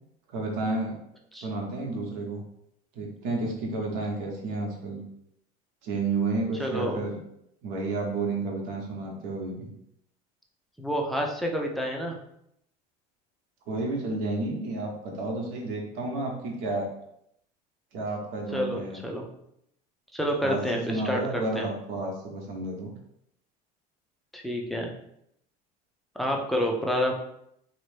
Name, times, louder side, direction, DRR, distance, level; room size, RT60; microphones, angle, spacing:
voice 1, 0.3-1.0 1.4-2.4 2.9-5.0 5.8-7.2 7.6-9.7 13.7-16.9 17.9-19.0 20.4-22.9, right 3 dB, 70° right, 0 dB, 0.9 m, -31 dB
voice 2, 6.6-7.0 10.8-12.2 18.5-19.3 20.1-21.7 24.3-24.9 26.2-27.1, equal, ahead, 0 dB, 0.5 m, -28 dB
2.9 x 2.1 x 3.2 m, 0.76 s
supercardioid pair, 105°, 20 cm